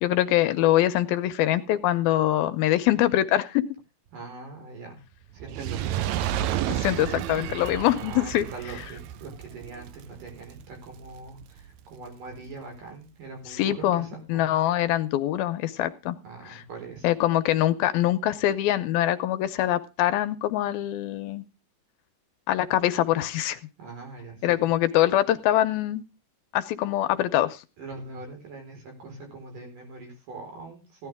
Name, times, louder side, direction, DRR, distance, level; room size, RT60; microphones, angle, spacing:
voice 1, 0.0-3.6 6.7-8.5 13.6-16.2 17.0-21.4 22.5-23.6 24.4-26.0 26.5-27.6, left 13 dB, 80° left, 11 dB, 2.6 m, -24 dB
voice 2, 4.1-5.0 5.3-6.3 8.0-14.6 16.1-17.1 23.8-24.7 27.8-31.1, right 3 dB, 60° right, 2 dB, 6.2 m, -42 dB
Fire, 5.4-11.8 12.5-12.6, right 12 dB, 85° right, 1.6 m, -32 dB
16.5 x 10.5 x 3.5 m, 0.30 s
omnidirectional pair, 4.3 m